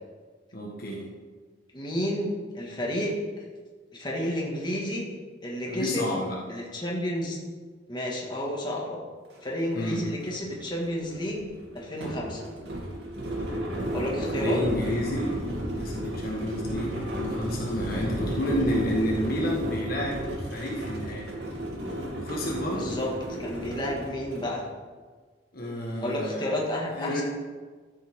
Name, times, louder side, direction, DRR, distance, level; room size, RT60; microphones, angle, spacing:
voice 1, 0.5-1.0 5.7-6.4 9.7-10.1 14.3-15.4 15.8-21.3 22.1-23.0 25.5-26.5 26.9-27.2, equal, 55° left, -2 dB, 1.6 m, -30 dB
voice 2, 1.7-3.1 3.9-5.0 5.4-6.1 6.5-7.4 7.9-9.0 9.4-11.5 11.7-12.5 13.9-14.6 22.7-23.1 23.4-24.6 26.0-27.2, left 1 dB, 25° left, -3 dB, 2.0 m, -31 dB
sound 1, 9.3-9.4 9.7-24.5, right 1 dB, 65° right, 2.7 m, -33 dB
13.5 x 7.7 x 3.7 m, 1.4 s
head